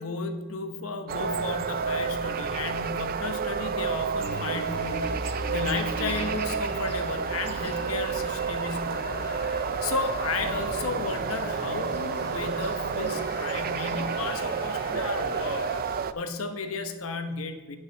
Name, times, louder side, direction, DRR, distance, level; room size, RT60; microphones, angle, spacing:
voice 1, 0.0-9.3 9.8-17.8, left 3 dB, 75° left, 7 dB, 1.0 m, -34 dB
sound 1, 1.1-16.1, right 6 dB, 45° right, 0.4 m, -30 dB
sound 2, 4.1-6.3 7.1-13.3, right 2 dB, 25° left, 2.7 m, -46 dB
sound 3, 4.2-15.8, left 2 dB, 50° left, 1.6 m, -39 dB
8.8 x 6.2 x 6.5 m, 1.2 s
head